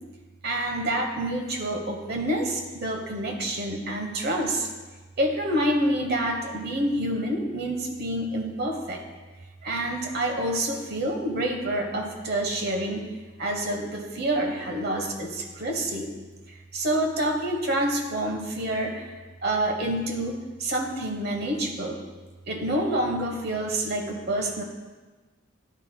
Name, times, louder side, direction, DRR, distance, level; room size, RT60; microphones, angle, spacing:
voice 1, 0.4-4.7 5.2-9.0 9.6-13.1 13.4-16.1 16.7-19.0 19.4-22.0 22.5-24.6, right 1 dB, 50° right, 3 dB, 1.1 m, -27 dB
9.7 x 9.4 x 2.2 m, 1.3 s
head